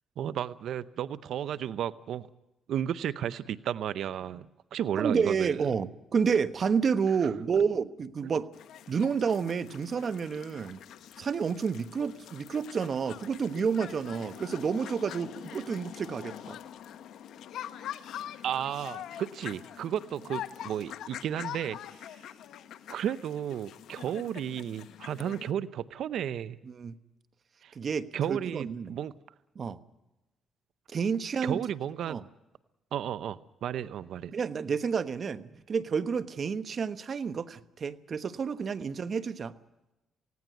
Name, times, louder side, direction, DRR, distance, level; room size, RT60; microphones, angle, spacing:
voice 1, 0.2-2.3 2.7-5.6 7.2-7.3 18.4-22.1 22.9-26.6 27.6-27.7 28.1-29.1 31.4-32.2 32.9-34.3, right 10 dB, 70° right, 16 dB, 0.7 m, -33 dB
voice 2, 5.0-8.5 8.9-10.8 11.2-16.6 26.7-27.0 27.7-29.0 29.5-29.8 30.9-31.6 32.0-32.2 34.3-39.5, right 6 dB, 45° right, 13 dB, 1.1 m, -30 dB
sound 1, 8.5-25.5, left 10 dB, 75° left, 1.1 m, -44 dB
19.0 x 17.5 x 9.2 m, 0.97 s
cardioid pair, 90°, 0 cm